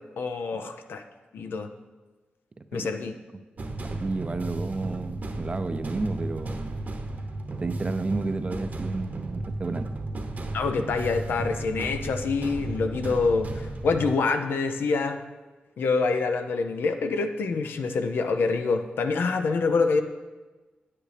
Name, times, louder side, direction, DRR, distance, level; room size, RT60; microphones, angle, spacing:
voice 1, 0.2-1.0 1.3-1.7 2.7-3.2 10.5-15.2 15.8-20.0, left 4 dB, 80° left, 7 dB, 0.6 m, -26 dB
voice 2, 2.6-2.9 3.9-6.8 7.6-9.9, right 3 dB, 35° right, 10 dB, 0.5 m, -32 dB
sound 1, 3.6-14.1, right 2 dB, 50° right, 1.0 m, -34 dB
9.4 x 8.6 x 3.4 m, 1.2 s
cardioid pair, 65°, 4 cm